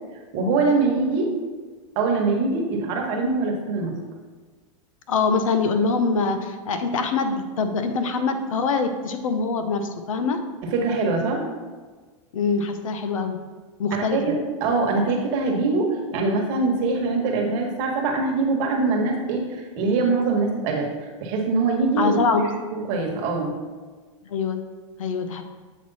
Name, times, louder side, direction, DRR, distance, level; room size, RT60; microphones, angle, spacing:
voice 1, 0.3-1.3 1.9-3.9 10.6-11.4 13.9-20.9 21.2-22.2 22.7-23.5, right 3 dB, 50° right, 0 dB, 1.3 m, -23 dB
voice 2, 5.1-10.4 12.3-13.4 13.8-14.2 22.0-22.5 24.3-24.6 25.0-25.4, left 4 dB, 90° left, 8 dB, 0.7 m, -24 dB
7.9 x 3.1 x 4.1 m, 1.4 s
hypercardioid pair, 130°, 17 cm